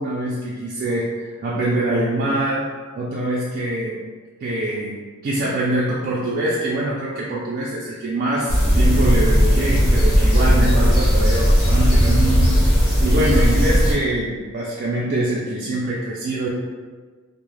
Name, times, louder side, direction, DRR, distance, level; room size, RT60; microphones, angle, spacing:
voice 1, 0.0-2.7 3.0-4.0 4.4-12.5 13.0-16.5, right 1 dB, 45° right, -6 dB, 0.3 m, -24 dB
sound 1, 8.5-13.9, equal, 75° left, 1.0 m, -16 dB
2.2 x 2.0 x 3.1 m, 1.4 s
head